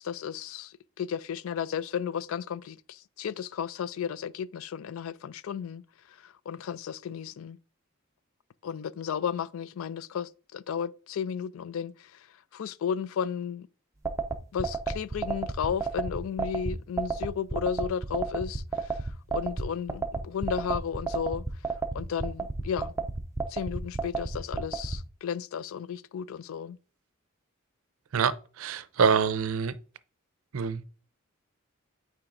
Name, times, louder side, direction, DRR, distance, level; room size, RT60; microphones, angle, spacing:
voice 1, 0.0-5.8 6.1-7.6 8.6-12.3 12.5-13.7 14.5-21.4 21.9-22.9 23.5-26.8, left 7 dB, 70° left, 0.3 m, -34 dB
sound 1, 14.0-25.0, right 4 dB, 15° right, 0.5 m, -31 dB
voice 2, 28.6-29.7 30.5-30.9, right 6 dB, 75° right, 0.5 m, -25 dB
8.7 x 4.5 x 2.5 m
head